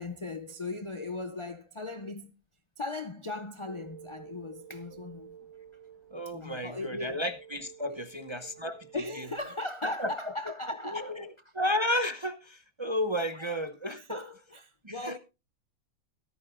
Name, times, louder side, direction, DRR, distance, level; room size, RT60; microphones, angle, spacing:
voice 1, 0.0-2.3 2.8-5.4 6.3-7.2 7.8-8.1 8.9-11.2 11.4-11.5 13.3-13.6 13.8-15.2, left 2 dB, 40° left, 0.4 m, -38 dB
sound 1, 3.6-9.4, right 9 dB, 70° right, 4.1 m, -52 dB
voice 2, 6.1-8.9 9.2-9.3 9.8-10.1 10.9-11.3 11.5-14.2 14.8-15.2, left 1 dB, 30° right, 0.6 m, -32 dB
14.5 x 13.5 x 2.5 m
omnidirectional pair, 1.5 m